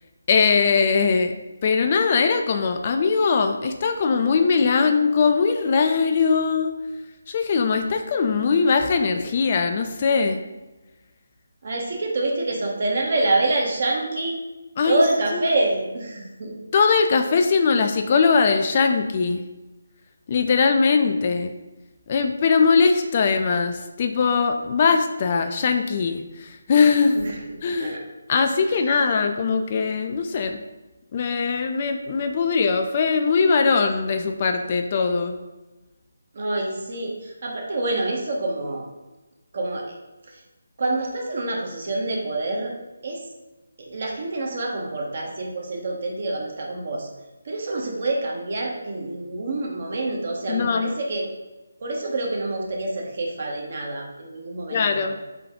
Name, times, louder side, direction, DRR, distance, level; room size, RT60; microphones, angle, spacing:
voice 1, 0.3-1.3 1.6-6.7 7.3-10.4 14.8-15.0 15.3-15.4 16.7-19.4 20.3-21.5 22.1-27.2 27.6-28.0 28.3-30.6 31.1-35.4 50.5-50.9 54.7-55.2, left 5 dB, 35° left, 6 dB, 0.3 m, -21 dB
voice 2, 11.6-14.4 14.9-16.5 27.1-28.0 28.7-28.8 36.3-38.8 39.5-39.8 40.8-42.7 43.0-43.2 43.8-47.1 47.4-51.2 51.8-55.1, right 2 dB, 50° right, -1 dB, 1.0 m, -26 dB
3.8 x 3.6 x 3.5 m, 1.1 s
figure-of-eight pair, 150°, 0 cm